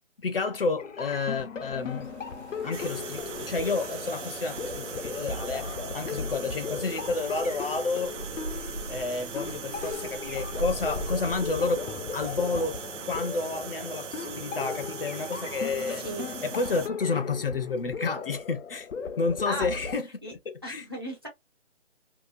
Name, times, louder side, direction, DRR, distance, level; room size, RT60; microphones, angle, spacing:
voice 1, 0.2-2.1 2.6-8.1 8.9-11.9 12.1-16.0 16.4-18.9 19.2-20.8, left 4 dB, 50° left, 0.5 m, -30 dB
sound 1, 0.8-20.0, left 5 dB, 90° left, 0.7 m, -37 dB
sound 2, 1.5-11.9, right 2 dB, 65° right, 0.9 m, -42 dB
sound 3, 2.7-16.9, right 7 dB, 80° right, 0.6 m, -40 dB
voice 2, 15.9-16.3 19.4-19.7 20.2-20.3 20.6-21.3, right 1 dB, 20° right, 0.5 m, -36 dB
2.8 x 2.1 x 2.4 m
hypercardioid pair, 165°, 36 cm